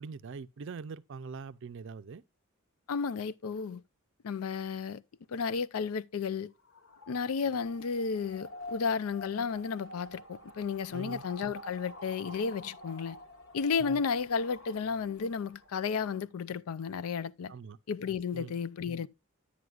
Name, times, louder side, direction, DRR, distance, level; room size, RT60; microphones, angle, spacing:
voice 1, 0.0-2.2 10.9-11.2 13.9-14.0 17.5-17.8 18.3-18.6, right 5 dB, 60° right, 0.4 m, -43 dB
voice 2, 2.9-3.8 4.2-5.0 5.3-6.5 7.1-13.2 13.5-17.5 17.9-19.1, left 5 dB, 85° left, 0.4 m, -33 dB
sound 1, 6.5-16.2, left 1 dB, 70° left, 1.5 m, -49 dB
10.0 x 9.3 x 2.4 m
head